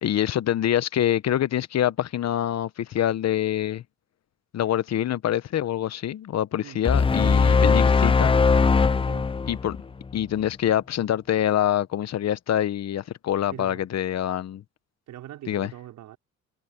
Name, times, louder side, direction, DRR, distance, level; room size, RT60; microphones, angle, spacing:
voice 1, 0.0-3.8 4.5-8.4 9.5-9.8 10.1-14.6 15.5-15.7, left 11 dB, 60° left, 1.0 m, -25 dB
sound 1, 6.8-10.2, left 5 dB, 20° left, 0.5 m, -20 dB
voice 2, 13.5-13.9 15.1-16.2, right 13 dB, 85° right, 5.5 m, -42 dB
cardioid pair, 90°, 30 cm